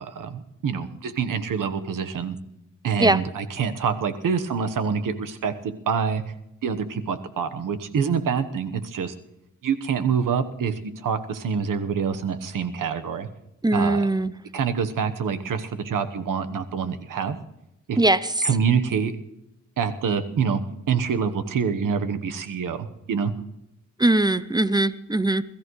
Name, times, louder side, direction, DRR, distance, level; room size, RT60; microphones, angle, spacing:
voice 1, 0.0-2.4 2.8-6.2 6.6-9.1 9.6-13.3 13.7-14.1 14.5-17.4 17.9-18.0 18.4-19.1 19.8-20.6 20.9-23.3, right 6 dB, 80° right, 1.2 m, -26 dB
voice 2, 13.6-14.3 18.0-18.5 24.0-25.4, right 2 dB, 15° right, 0.7 m, -20 dB
21.5 x 14.0 x 3.2 m
cardioid pair, 65°, 32 cm